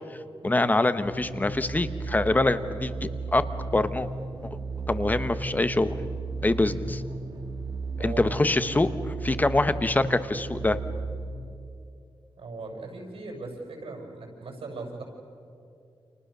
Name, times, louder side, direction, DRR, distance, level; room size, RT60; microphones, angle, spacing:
voice 1, 0.4-3.4 3.7-4.1 4.9-6.0 6.4-7.0 8.0-10.8, left 2 dB, 20° left, 11 dB, 1.0 m, -25 dB
sound 1, 1.0-11.8, right 3 dB, 50° right, 2.7 m, -34 dB
voice 2, 8.0-8.5 12.4-15.0, right 3 dB, 85° right, 1 dB, 7.0 m, -39 dB
30.0 x 28.5 x 6.7 m, 2.5 s
wide cardioid pair, 160°, 9 cm